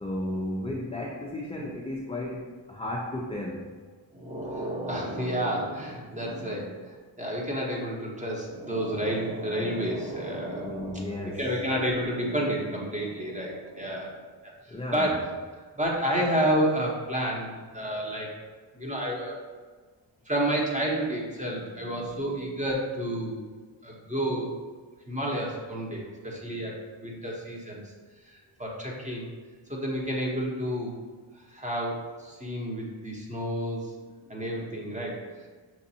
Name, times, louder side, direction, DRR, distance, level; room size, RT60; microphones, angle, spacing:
voice 1, 0.0-3.7 10.6-11.4 14.7-15.2, left 1 dB, 15° left, -4 dB, 0.4 m, -34 dB
voice 2, 4.1-15.2 15.6-18.3 18.7-19.4 20.2-23.4 23.8-24.5 25.1-26.7 27.0-27.8 28.2-29.3 29.7-30.9 31.3-33.9 34.3-35.5, right 1 dB, 15° right, -3 dB, 0.9 m, -30 dB
6.0 x 2.5 x 2.7 m, 1.5 s
wide cardioid pair, 90°, 47 cm